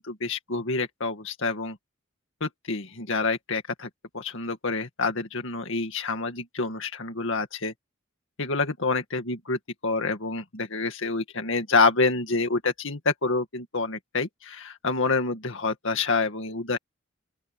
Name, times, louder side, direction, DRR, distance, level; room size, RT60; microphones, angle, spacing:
voice 1, 0.0-1.8 2.4-3.9 4.1-7.7 8.4-16.8, left 3 dB, 65° left, 2.1 m, -27 dB
open air
head